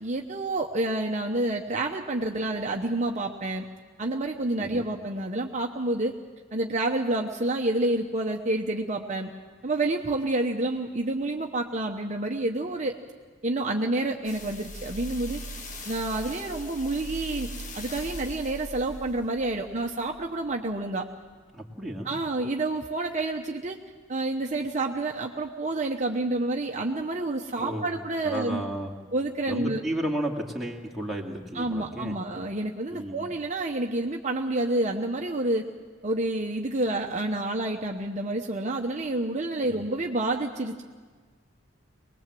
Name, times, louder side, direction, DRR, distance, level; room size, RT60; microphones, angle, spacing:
voice 1, 0.0-3.6 4.0-6.1 6.5-9.3 9.6-12.9 13.4-15.4 15.9-21.1 22.0-23.8 24.1-28.6 29.1-29.8 31.5-35.7 36.0-40.8, right 2 dB, 35° right, 2 dB, 1.0 m, -29 dB
sound 1, 14.2-20.7 21.3-21.4, equal, 40° left, 1.5 m, -40 dB
voice 2, 21.5-22.2 27.6-27.9 28.2-28.9 29.5-32.2 32.9-33.2 39.7-39.8, right 1 dB, ahead, -2 dB, 2.3 m, -33 dB
23.5 x 20.0 x 7.7 m, 1.5 s
head